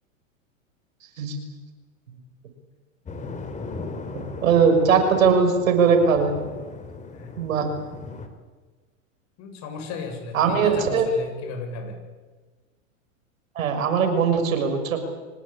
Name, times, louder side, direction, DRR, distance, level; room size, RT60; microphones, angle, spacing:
sound 1, 3.1-8.3, left 3 dB, 20° left, 3.3 m, -37 dB
voice 1, 4.1-6.4 7.4-7.7 10.3-11.1 13.5-15.0, right 6 dB, 80° right, 6 dB, 6.3 m, -20 dB
voice 2, 9.4-12.0, left 4 dB, 40° left, 5 dB, 7.3 m, -35 dB
25.5 x 19.5 x 8.7 m, 1.3 s
hypercardioid pair, 125°, 40 cm